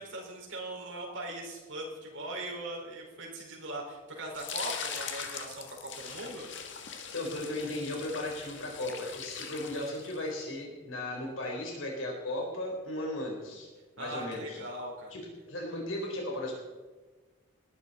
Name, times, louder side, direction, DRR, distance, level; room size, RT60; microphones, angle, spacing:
voice 1, 0.0-6.5 14.0-15.2, right 1 dB, 75° right, -2 dB, 4.7 m, -40 dB
sound 1, 4.3-10.4, left 7 dB, 65° left, 1.7 m, -41 dB
voice 2, 7.1-13.7 14.0-14.6 15.1-15.2 15.5-16.6, left 1 dB, 90° left, 0 dB, 3.9 m, -36 dB
19.5 x 12.5 x 4.2 m, 1.3 s
head